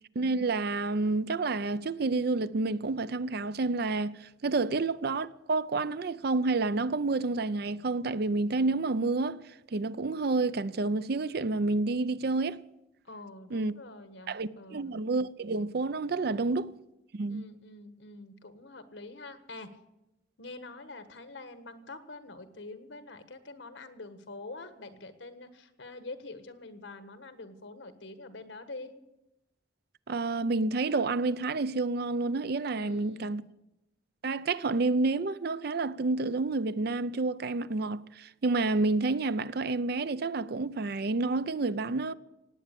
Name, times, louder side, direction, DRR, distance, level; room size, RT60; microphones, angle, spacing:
voice 1, 0.2-9.4 9.7-12.6 13.5-13.7 14.3-16.7 17.1-17.4 30.1-33.4 34.2-42.1, right 3 dB, 60° right, 0.5 m, -29 dB
voice 2, 13.0-15.0 17.3-19.8 20.4-28.9 32.7-33.5, left 2 dB, 80° left, 1.5 m, -46 dB
18.0 x 8.9 x 8.4 m
head